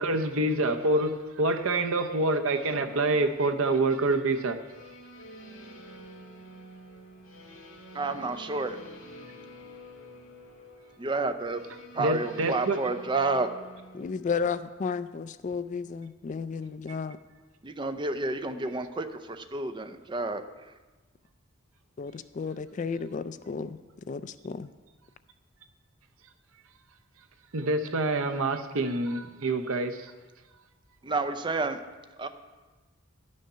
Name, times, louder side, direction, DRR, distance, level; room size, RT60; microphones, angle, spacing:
voice 1, 0.0-4.6 12.0-12.8 27.5-30.1, right 2 dB, 75° right, 7 dB, 0.8 m, -26 dB
sound 1, 4.7-14.1, equal, 75° left, 2.0 m, -48 dB
voice 2, 7.9-8.8 11.0-11.6 11.9-13.5 17.6-20.4 31.0-31.8 32.2-32.3, right 3 dB, 20° right, 8 dB, 0.5 m, -30 dB
voice 3, 13.9-17.2 22.0-23.8 24.1-24.7, left 5 dB, 35° left, 13 dB, 0.3 m, -33 dB
11.5 x 6.5 x 5.5 m, 1.2 s
head